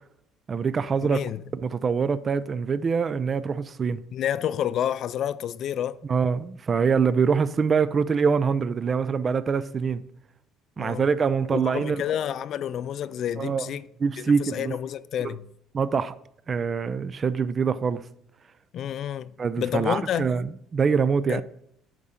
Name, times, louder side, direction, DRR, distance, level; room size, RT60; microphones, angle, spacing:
voice 1, 0.5-1.2 1.6-4.0 6.1-10.0 10.8-12.0 13.4-13.7 14.0-14.8 15.7-16.2 16.5-18.0 19.4-21.4, right 5 dB, 40° right, 0.4 m, -24 dB
voice 2, 1.0-1.4 4.1-6.0 10.8-11.0 11.5-13.9 14.2-15.5 18.7-20.3 21.3-21.4, left 10 dB, 60° left, 0.3 m, -29 dB
8.5 x 3.7 x 5.6 m
supercardioid pair, 85°, 0 cm